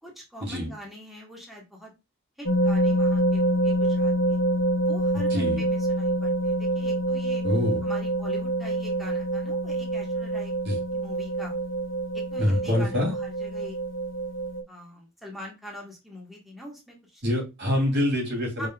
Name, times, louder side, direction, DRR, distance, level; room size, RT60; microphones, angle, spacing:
voice 1, 0.0-1.9 2.4-4.4 4.8-7.4 7.8-11.5 12.1-13.8 14.7-17.2 17.6-17.7 18.6-18.7, equal, ahead, -2 dB, 1.4 m, -43 dB
sound 1, 2.4-14.6, right 1 dB, 75° left, 1.3 m, -26 dB
voice 2, 7.4-7.8 10.7-10.8 12.4-13.1 17.2-18.7, left 1 dB, 55° right, 0 dB, 2.7 m, -25 dB
5.1 x 4.0 x 2.3 m, 0.24 s
head